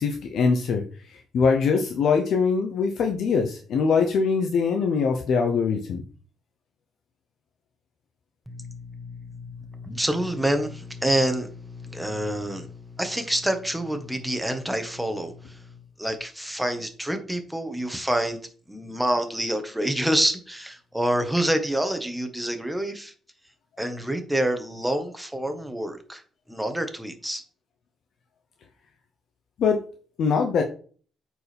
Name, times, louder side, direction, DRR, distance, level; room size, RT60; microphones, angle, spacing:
voice 1, 0.0-6.0 29.6-29.8 30.2-30.6, left 5 dB, 70° left, 3 dB, 0.8 m, -23 dB
voice 2, 8.5-18.4 18.7-23.1 23.8-26.2 26.5-27.4, right 1 dB, 5° right, 6 dB, 1.3 m, -27 dB
8.3 x 4.7 x 3.5 m, 0.42 s
cardioid pair, 90°, 0 cm